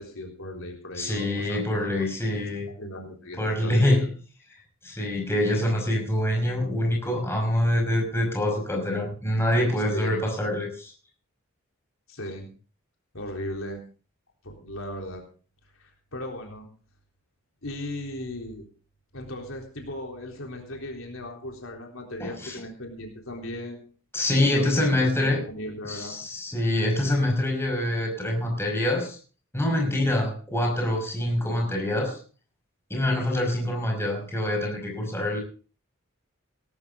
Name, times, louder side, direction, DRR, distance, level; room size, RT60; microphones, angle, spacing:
voice 1, 0.0-1.6 2.0-2.1 2.7-4.1 9.9-10.2 12.1-12.5 13.1-13.8 14.4-15.2 15.8-16.7 17.6-18.7 19.1-23.9 24.3-26.2, left 1 dB, 70° left, 1 dB, 3.7 m, -37 dB
voice 2, 0.9-2.7 3.4-4.1 4.8-10.9 22.2-22.6 24.1-25.4 25.8-29.2 29.5-32.2 32.9-35.4, left 1 dB, 10° left, 1 dB, 5.4 m, -25 dB
18.5 x 13.0 x 3.9 m, 0.37 s
head